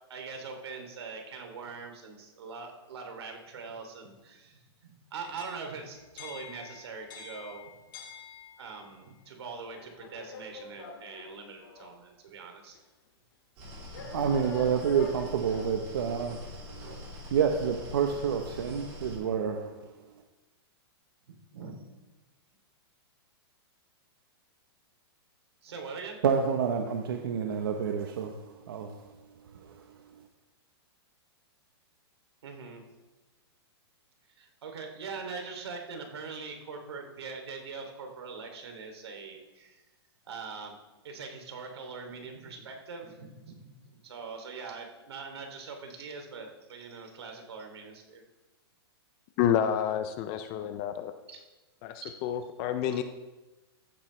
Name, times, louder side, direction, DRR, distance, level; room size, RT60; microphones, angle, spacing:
voice 1, 0.1-7.7 8.6-12.8 13.9-14.1 21.5-21.7 25.6-26.2 32.4-32.8 34.4-39.8 40.2-40.8 41.0-48.2 51.3-51.4 52.0-52.1, right 4 dB, 75° right, 2.8 m, -42 dB
sound 1, 5.2-8.9 9.7-12.0 12.7-12.8 13.9-15.9, left 4 dB, 50° left, 2.0 m, -47 dB
sound 2, 13.6-19.1, left 2 dB, 25° right, 3.3 m, -44 dB
voice 2, 14.1-16.4 17.3-19.7 26.2-28.4 28.7-28.9, right 7 dB, 60° right, 1.0 m, -28 dB
voice 3, 49.4-51.1 51.8-53.0, left 9 dB, 15° left, 0.3 m, -29 dB
15.0 x 10.5 x 3.3 m
supercardioid pair, 180°, 14 cm